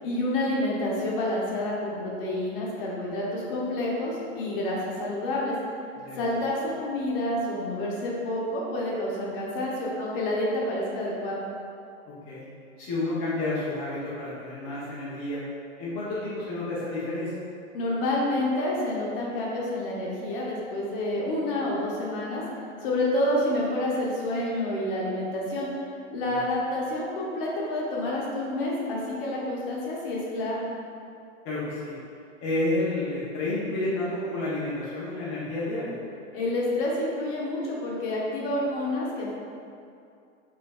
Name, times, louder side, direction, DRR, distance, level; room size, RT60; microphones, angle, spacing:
voice 1, 0.0-5.5 6.2-11.4 17.7-22.4 22.8-25.7 26.1-30.7 36.3-39.3, left 1 dB, 45° left, -4 dB, 0.9 m, -28 dB
voice 2, 12.1-12.4 12.8-15.4 15.8-17.3 26.3-26.4 31.4-32.0 32.4-36.0, left 2 dB, 20° left, -9 dB, 0.5 m, -30 dB
5.3 x 2.6 x 2.3 m, 2.5 s
hypercardioid pair, 145°, 40 cm